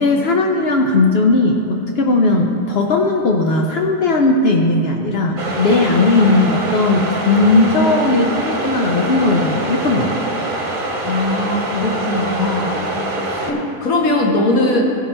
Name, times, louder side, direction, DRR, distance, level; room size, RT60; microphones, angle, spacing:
voice 1, 0.0-10.3 13.3-13.4, left 2 dB, 75° left, 2 dB, 0.5 m, -16 dB
sound 1, 5.4-13.5, right 2 dB, 40° right, 1.0 m, -24 dB
voice 2, 11.0-12.9 13.4-14.8, left 2 dB, 60° left, 0 dB, 1.6 m, -20 dB
15.0 x 5.5 x 4.3 m, 2.7 s
omnidirectional pair, 1.7 m